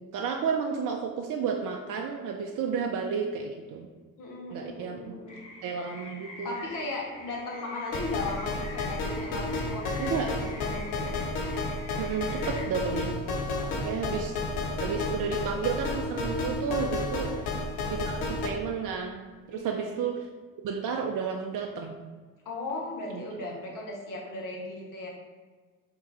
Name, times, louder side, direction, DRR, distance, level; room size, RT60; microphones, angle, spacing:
voice 1, 0.0-3.9 4.5-5.2 5.6-6.6 10.0-10.3 12.0-13.2 13.8-14.3 14.8-17.3 17.9-20.3 20.6-22.0 23.1-23.2, right 6 dB, 50° right, 2 dB, 0.5 m, -32 dB
voice 2, 4.2-5.3 6.4-11.1 13.6-14.3 17.3-17.5 19.5-19.9 22.4-25.1, left 2 dB, 55° left, -2 dB, 1.3 m, -37 dB
sound 1, 5.3-12.7, left 2 dB, 15° left, 1.4 m, -46 dB
sound 2, 7.9-18.5, left 2 dB, 70° left, 0.8 m, -32 dB
3.5 x 3.1 x 4.1 m, 1.4 s
hypercardioid pair, 50°, 40 cm